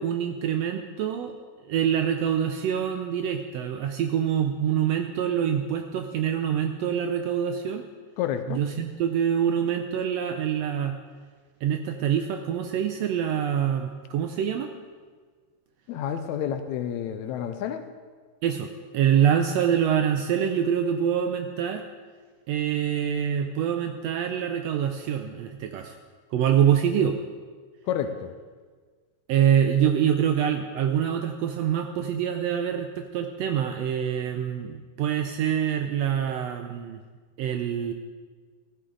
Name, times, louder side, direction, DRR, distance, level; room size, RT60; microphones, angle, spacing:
voice 1, 0.0-1.3 1.6-7.8 8.5-11.0 11.6-14.7 18.4-21.8 22.5-26.0 26.3-27.2 29.3-37.0 37.4-37.9, right 9 dB, 80° right, 6 dB, 1.5 m, -25 dB
voice 2, 8.2-8.6 15.9-17.8 27.9-28.3, left 9 dB, 80° left, 9 dB, 1.9 m, -29 dB
15.0 x 11.0 x 3.8 m, 1.5 s
omnidirectional pair, 3.4 m